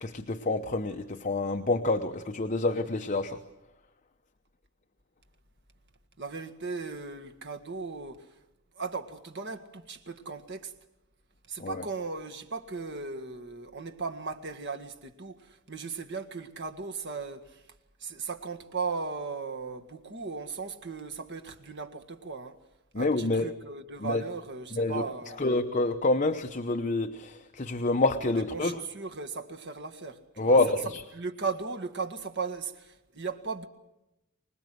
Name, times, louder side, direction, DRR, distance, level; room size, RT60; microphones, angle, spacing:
voice 1, 0.0-3.4 11.6-11.8 22.9-23.5 24.0-24.2 24.7-25.0 25.4-28.8 30.4-31.0, left 2 dB, 35° left, 0.9 m, -27 dB
voice 2, 6.2-8.3 8.8-10.7 11.5-17.7 18.0-22.6 23.0-25.5 28.5-30.6 31.1-33.7, right 4 dB, 55° right, 1.9 m, -37 dB
25.0 x 20.0 x 7.8 m
head